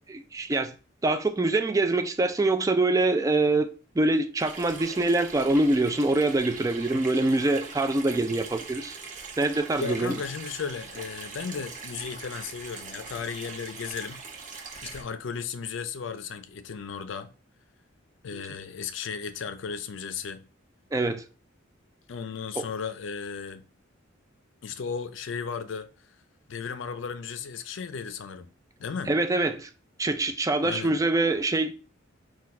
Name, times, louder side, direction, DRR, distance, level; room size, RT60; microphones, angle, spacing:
voice 1, 0.1-0.7 1.0-3.7 4.0-9.0 9.4-10.2 18.3-18.4 20.9-21.2 22.6-22.7 29.1-29.7 30.0-31.7, right 2 dB, 15° right, 0.4 m, -24 dB
Water tap faucet / Sink (filling or washing), 4.4-15.0, right 4 dB, 40° right, 0.8 m, -42 dB
voice 2, 9.7-14.2 14.8-17.3 18.2-20.5 22.1-23.6 24.6-25.9 26.5-28.5 28.8-29.1 30.6-31.0, left 6 dB, 65° left, 0.4 m, -35 dB
4.3 x 2.3 x 4.2 m
head